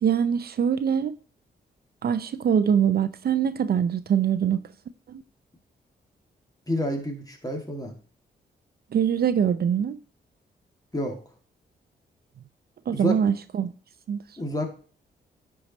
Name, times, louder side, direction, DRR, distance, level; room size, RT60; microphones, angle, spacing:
voice 1, 0.0-1.2 2.0-4.6 5.1-5.2 8.9-10.0 12.9-13.7 14.1-14.2, right 8 dB, 60° right, 0.6 m, -23 dB
voice 2, 6.7-7.9 10.9-11.2 12.9-13.2 14.4-14.7, equal, 20° left, 2.2 m, -29 dB
9.9 x 4.8 x 4.1 m
cardioid pair, 65°, 18 cm